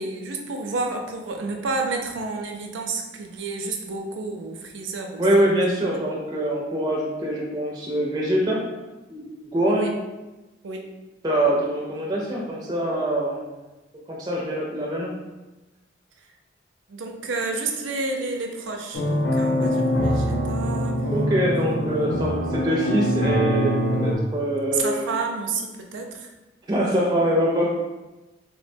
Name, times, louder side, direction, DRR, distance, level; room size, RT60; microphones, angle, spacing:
voice 1, 0.0-5.7 9.7-9.9 10.6-10.8 16.9-21.0 21.6-21.8 24.7-26.3, right 3 dB, 80° right, 2 dB, 0.4 m, -30 dB
voice 2, 5.2-8.6 9.1-9.9 11.2-13.4 14.1-15.1 21.1-25.0 26.7-27.7, right 1 dB, 20° right, -3 dB, 0.4 m, -24 dB
sound 1, 18.9-24.1, equal, 60° left, 0.5 m, -23 dB
3.4 x 2.1 x 2.6 m, 1.1 s
head